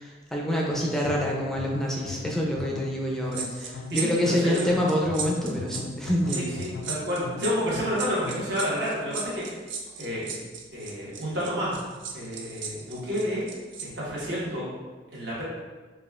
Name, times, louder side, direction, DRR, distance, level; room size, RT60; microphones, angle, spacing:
voice 1, 0.0-6.5, equal, ahead, -2 dB, 0.4 m, -27 dB
sound 1, 0.7-8.6, left 4 dB, 80° left, 0.3 m, -39 dB
sound 2, 3.3-13.9 14.2-14.4, right 6 dB, 90° right, 0.5 m, -36 dB
voice 2, 3.9-4.7 6.3-9.5 10.0-10.3 10.7-11.7 12.1-13.4 14.0-14.7 15.1-15.4, equal, 70° right, -7 dB, 1.2 m, -30 dB
4.9 x 2.3 x 2.3 m, 1.3 s
head